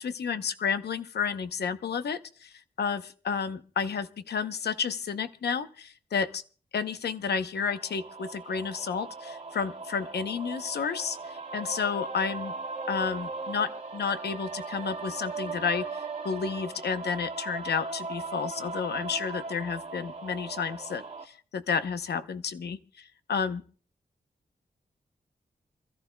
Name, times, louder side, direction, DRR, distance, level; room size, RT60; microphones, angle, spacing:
voice 1, 0.0-2.5 2.8-6.4 6.7-12.5 12.9-15.9 16.2-23.6, left 6 dB, 85° left, 10 dB, 0.8 m, -31 dB
sound 1, 7.7-21.2, right 3 dB, 45° right, 2.0 m, -38 dB
27.5 x 14.0 x 2.3 m, 0.40 s
wide cardioid pair, 100°, 17 cm